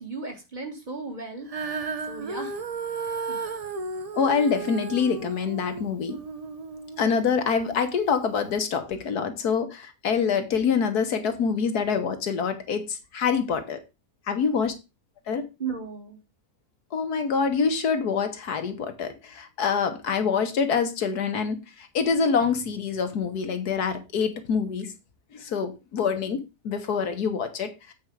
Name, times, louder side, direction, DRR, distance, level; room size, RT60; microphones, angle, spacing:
voice 1, 0.0-1.5 2.1-2.6 3.3-3.4 14.6-14.7 15.6-16.2, right 4 dB, 30° right, 1.7 m, -35 dB
Female singing, 1.5-7.8 8.5-8.6, right 4 dB, 45° right, 0.4 m, -34 dB
voice 2, 4.1-6.2 7.0-13.8 14.3-14.7 15.3-15.4 16.9-24.9 25.3-27.9, left 6 dB, 75° left, 1.7 m, -26 dB
8.2 x 4.7 x 4.7 m
omnidirectional pair, 1.7 m